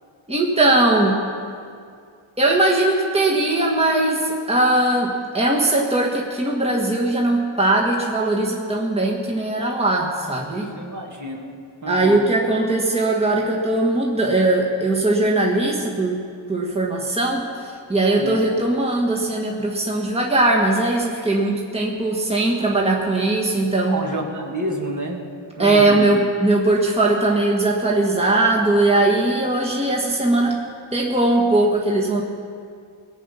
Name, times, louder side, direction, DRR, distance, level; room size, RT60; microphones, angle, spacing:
voice 1, 0.3-1.2 2.4-10.7 11.9-16.2 16.5-24.0 25.6-30.6 30.9-32.2, right 2 dB, 10° right, -2 dB, 1.6 m, -20 dB
voice 2, 10.5-11.5 11.8-12.2 18.2-18.4 23.9-25.3 25.6-26.1, right 1 dB, 35° right, 0 dB, 2.1 m, -29 dB
20.0 x 8.5 x 5.9 m, 2.3 s
wide cardioid pair, 80°, 49 cm